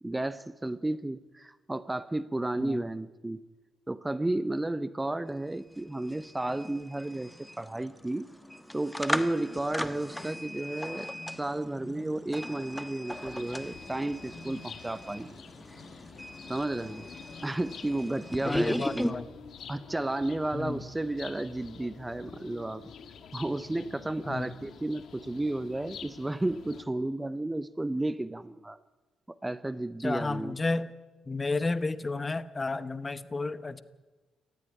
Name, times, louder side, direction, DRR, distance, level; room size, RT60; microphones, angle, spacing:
voice 1, 0.0-3.5 3.9-8.3 8.7-15.3 16.4-17.1 17.4-19.2 19.7-22.9 23.3-28.8 29.3-30.6, right 2 dB, 10° right, 15 dB, 0.7 m, -33 dB
sound 1, 5.3-5.4 5.6-19.1, equal, 5° left, 1.2 m, -38 dB
sound 2, 13.1-26.8, left 7 dB, 65° left, 1.7 m, -48 dB
voice 2, 18.4-19.2 20.5-20.8 24.3-24.5 30.0-30.9 31.3-33.8, left 3 dB, 25° left, 14 dB, 1.0 m, -32 dB
19.0 x 14.5 x 9.9 m, 1.2 s
cardioid pair, 90°, 0 cm